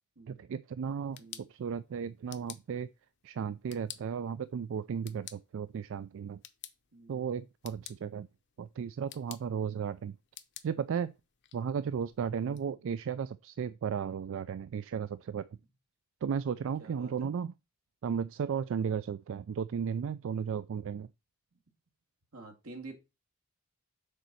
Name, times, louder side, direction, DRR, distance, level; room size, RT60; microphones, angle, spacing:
voice 1, 0.3-2.9 3.2-6.4 7.1-8.3 8.6-10.2 10.6-11.1 11.5-15.5 16.2-17.5 18.0-21.1, right 7 dB, 65° right, 0.3 m, -35 dB
sound 1, 0.9-12.6, left 12 dB, 55° left, 0.7 m, -53 dB
voice 2, 6.9-7.2 12.3-12.6 16.8-17.3 22.3-22.9, right 3 dB, 85° right, 2.3 m, -48 dB
6.6 x 4.2 x 6.1 m
head